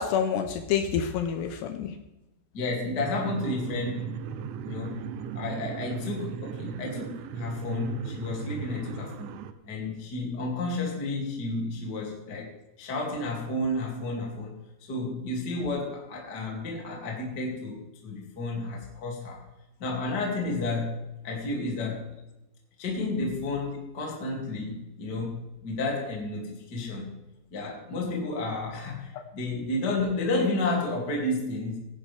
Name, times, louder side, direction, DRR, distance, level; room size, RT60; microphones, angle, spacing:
voice 1, 0.0-1.9 29.1-29.2, left 7 dB, 85° left, 6 dB, 2.4 m, -28 dB
voice 2, 2.5-4.1 4.7-9.3 9.7-12.5 12.8-19.4 19.8-22.1 22.8-27.1 27.5-31.8, left 2 dB, 35° left, -1 dB, 1.8 m, -31 dB
sound 1, 3.0-9.5, right 9 dB, 80° right, 3.1 m, -37 dB
17.5 x 11.0 x 3.5 m, 0.96 s
omnidirectional pair, 5.9 m